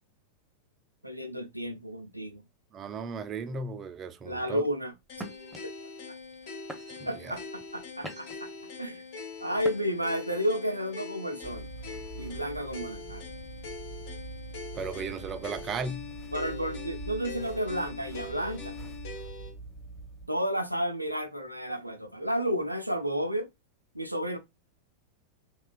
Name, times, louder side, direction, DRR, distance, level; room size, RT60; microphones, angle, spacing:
voice 1, 1.0-2.4 4.2-4.9 5.6-5.7 7.1-8.5 8.8-9.0 9.4-11.7 12.2-13.3 16.3-18.8 20.3-23.5 23.9-24.4, equal, 90° right, 0.4 m, -32 dB
voice 2, 2.7-4.6 7.0-7.4 14.7-16.1, right 4 dB, 25° right, 0.4 m, -36 dB
sound 1, 5.1-19.5, left 4 dB, 50° left, 0.8 m, -43 dB
sound 2, 5.2-5.6 6.2-6.4 6.7-7.2 7.7-8.5 9.6-10.1, right 1 dB, 5° right, 0.7 m, -43 dB
sound 3, 11.4-20.3, right 3 dB, 15° left, 1.0 m, -44 dB
3.0 x 2.3 x 2.2 m
figure-of-eight pair, 90°, 0 cm